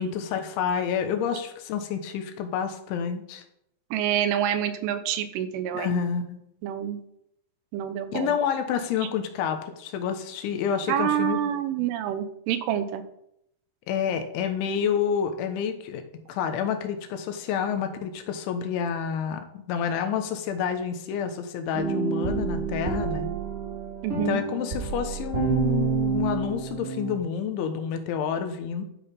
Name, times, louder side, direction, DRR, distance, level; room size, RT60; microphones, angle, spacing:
voice 1, 0.0-3.4 5.7-6.4 8.1-11.9 13.9-16.0 16.3-23.3 24.1-28.9, left 7 dB, 75° left, 7 dB, 3.4 m, -29 dB
voice 2, 3.9-6.0 6.6-7.0 7.7-8.3 10.9-13.0 24.0-24.4, right 10 dB, 85° right, 9 dB, 3.5 m, -27 dB
sound 1, 21.7-27.2, right 6 dB, 25° right, 1.8 m, -28 dB
12.0 x 8.0 x 5.3 m, 0.76 s
omnidirectional pair, 5.6 m